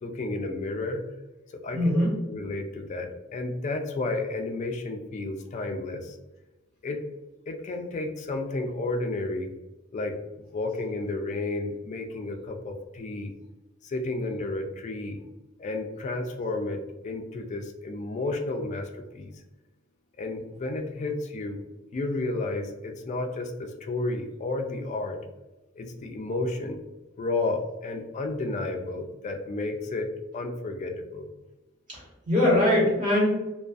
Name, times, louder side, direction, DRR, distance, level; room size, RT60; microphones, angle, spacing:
voice 1, 0.0-1.0 1.5-6.2 6.8-7.0 7.5-9.5 9.9-10.2 10.5-13.3 13.8-15.2 15.6-19.3 20.2-21.6 21.9-25.2 25.8-26.8 27.2-31.3, left 2 dB, 35° left, 4 dB, 0.3 m, -32 dB
voice 2, 1.7-2.2 31.9-33.3, left 1 dB, 35° right, -6 dB, 1.1 m, -22 dB
2.4 x 2.3 x 2.4 m, 1.0 s
head